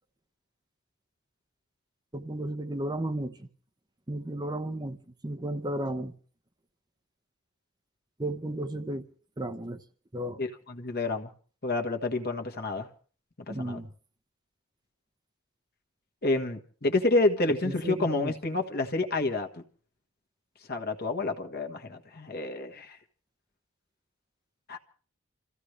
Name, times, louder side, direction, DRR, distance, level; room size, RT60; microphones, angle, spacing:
voice 1, 2.1-3.5 4.1-5.0 5.2-6.1 8.2-9.0 9.4-9.8 10.1-10.4 13.5-13.9 17.7-18.3, right 1 dB, 20° right, 0.9 m, -33 dB
voice 2, 10.4-11.3 11.6-12.9 13.5-13.8 16.2-19.5 20.7-23.0 24.7-24.8, left 2 dB, 45° left, 1.5 m, -29 dB
27.5 x 15.0 x 3.3 m
head